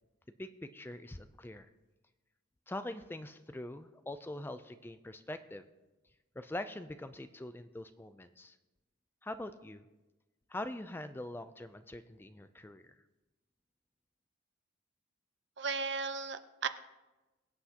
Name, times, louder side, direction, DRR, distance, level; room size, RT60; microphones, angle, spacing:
voice 1, 0.4-1.7 2.7-5.6 6.4-8.6 9.2-9.8 10.5-12.8, left 1 dB, 10° left, 10 dB, 0.3 m, -43 dB
voice 2, 15.6-16.7, right 4 dB, 55° right, 10 dB, 0.7 m, -35 dB
23.0 x 7.9 x 2.9 m, 1.1 s
head